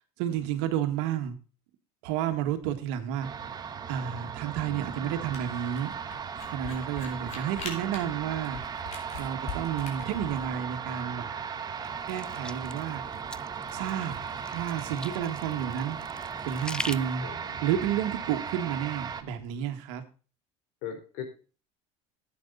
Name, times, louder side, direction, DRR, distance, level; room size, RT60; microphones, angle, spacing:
voice 1, 0.2-1.4 2.0-3.3 3.9-5.9 6.5-8.6 9.2-11.3 12.1-13.0 13.7-14.2 14.5-16.0 16.5-17.2 17.6-20.0, right 10 dB, 80° right, 7 dB, 1.8 m, -31 dB
sound 1, 3.2-19.2, right 7 dB, 25° right, 1.1 m, -37 dB
voice 2, 4.6-5.1 17.2-17.6 20.8-21.2, left 8 dB, 70° left, 5 dB, 4.2 m, -40 dB
Camera, 5.3-10.5, left 4 dB, 50° left, 3.7 m, -41 dB
sound 2, 11.8-17.0, left 2 dB, 5° left, 0.4 m, -42 dB
11.0 x 8.5 x 4.0 m, 0.36 s
supercardioid pair, 120°, 15 cm